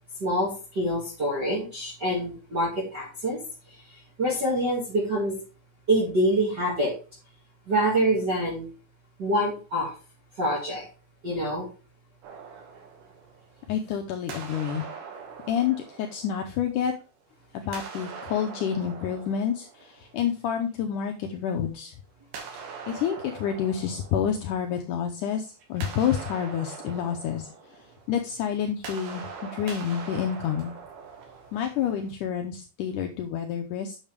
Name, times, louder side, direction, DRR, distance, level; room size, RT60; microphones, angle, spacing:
voice 1, 0.2-3.4 4.2-5.4 5.9-6.9 7.7-8.7 9.2-9.9 10.4-10.8 11.2-11.7, right 1 dB, 35° right, -7 dB, 2.3 m, -25 dB
sound 1, 12.2-13.9 14.3-17.1 17.6-20.5 22.3-25.1 25.4-32.1, right 5 dB, 85° right, 3.7 m, -42 dB
voice 2, 13.7-14.8 15.5-16.9 17.5-21.9 22.9-30.7 31.5-34.0, left 8 dB, 80° left, 4 dB, 2.0 m, -29 dB
8.9 x 6.4 x 3.4 m, 0.35 s
omnidirectional pair, 4.3 m